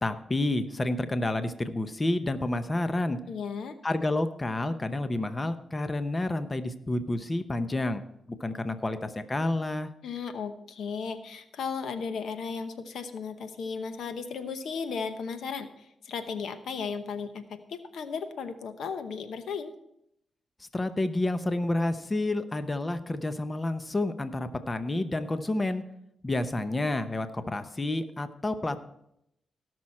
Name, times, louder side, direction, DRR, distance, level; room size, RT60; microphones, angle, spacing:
voice 1, 0.0-3.2 3.8-8.0 8.4-9.9 20.7-25.8 26.2-28.8, left 2 dB, 25° left, 10 dB, 0.8 m, -29 dB
voice 2, 3.3-3.8 10.0-19.7, left 5 dB, 85° left, 9 dB, 0.9 m, -35 dB
17.5 x 6.2 x 4.3 m, 0.78 s
cardioid pair, 80°, 0 cm